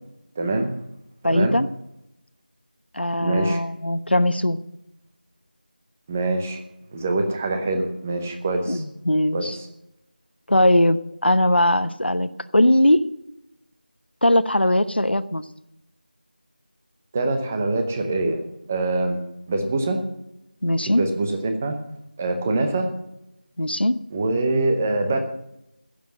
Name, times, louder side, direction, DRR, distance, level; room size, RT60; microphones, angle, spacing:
voice 1, 0.4-0.7 1.2-1.6 3.2-3.6 6.1-6.6 6.9-8.8 9.3-9.7 17.1-18.4 18.7-19.2 19.5-20.0 20.8-21.8 22.2-22.9 24.1-25.2, right 2 dB, 10° right, 6 dB, 0.7 m, -24 dB
voice 2, 1.2-1.7 2.9-4.6 8.7-9.6 10.5-13.1 14.2-15.4 20.6-21.0 23.6-24.0, left 1 dB, 90° left, 12 dB, 0.9 m, -20 dB
15.5 x 7.2 x 7.6 m, 0.84 s
figure-of-eight pair, 170°, 5 cm